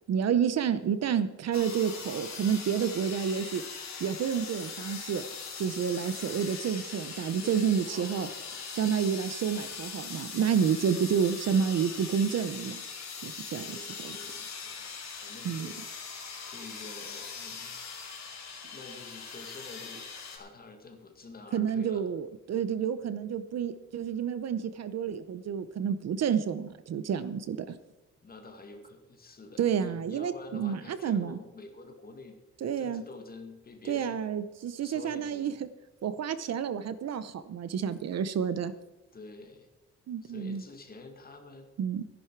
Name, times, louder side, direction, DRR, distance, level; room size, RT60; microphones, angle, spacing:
voice 1, 0.1-3.6 4.0-5.3 5.6-8.3 8.7-12.8 13.2-14.2 15.4-15.7 21.5-27.8 29.6-31.4 32.6-33.0 33.9-35.7 36.0-38.7 40.1-40.6 41.8-42.0, right 7 dB, 60° right, 13 dB, 0.8 m, -29 dB
sound 1, 1.5-20.4, left 5 dB, 65° left, 3.2 m, -41 dB
voice 2, 7.4-8.4 13.6-15.8 16.5-17.8 18.7-20.0 20.3-22.0 28.2-32.4 32.8-34.2 34.8-35.6 39.1-39.7 40.2-41.7, left 3 dB, 30° left, 4 dB, 2.1 m, -47 dB
15.0 x 11.0 x 4.6 m, 1.1 s
wide cardioid pair, 170°, 29 cm